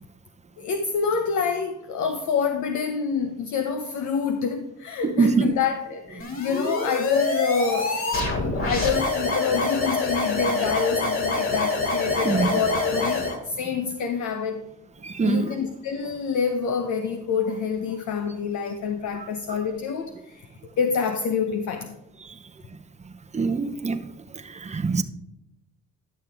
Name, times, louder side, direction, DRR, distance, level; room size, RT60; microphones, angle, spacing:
voice 1, 0.6-14.7 15.2-20.5 20.8-21.9, left 6 dB, 75° left, 0.8 m, -27 dB
voice 2, 5.0-5.5 12.2-12.5 15.0-15.5 23.3-24.0 24.6-25.0, right 4 dB, 25° right, 0.9 m, -23 dB
sound 1, 6.2-13.4, left 2 dB, 45° left, 2.9 m, -26 dB
11.5 x 6.6 x 3.6 m
cardioid pair, 90°, 30 cm